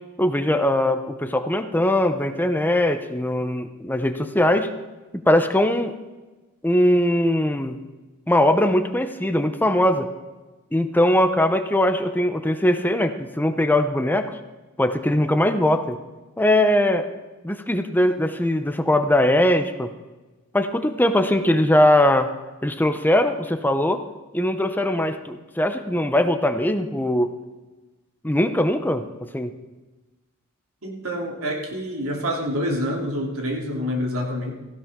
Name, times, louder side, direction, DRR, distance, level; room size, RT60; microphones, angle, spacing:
voice 1, 0.2-4.7 5.3-5.9 6.6-7.8 8.3-10.1 10.7-14.3 14.8-16.0 16.4-17.0 17.4-19.9 20.5-22.3 22.6-24.0 24.3-27.3 28.2-29.0 29.3-29.5, left 1 dB, 10° left, 8 dB, 0.7 m, -20 dB
voice 2, 30.8-34.5, equal, 80° right, 0 dB, 3.2 m, -27 dB
17.0 x 15.5 x 3.7 m, 1.2 s
head